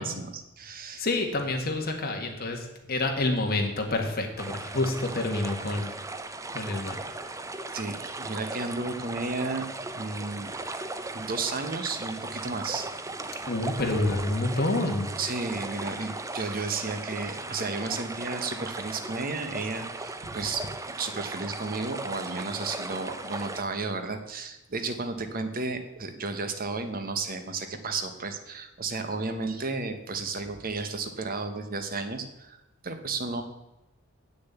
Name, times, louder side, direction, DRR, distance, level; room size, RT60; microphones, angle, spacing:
voice 1, 0.0-1.0 7.7-9.7 9.9-10.5 11.1-13.2 15.2-20.7 21.0-33.4, right 3 dB, 45° right, 8 dB, 1.1 m, -33 dB
voice 2, 1.0-5.9 6.5-7.0 13.5-15.1, left 2 dB, 50° left, 3 dB, 1.8 m, -28 dB
sound 1, 4.4-23.6, right 2 dB, 15° right, 0.6 m, -37 dB
7.9 x 6.8 x 8.3 m, 0.95 s
head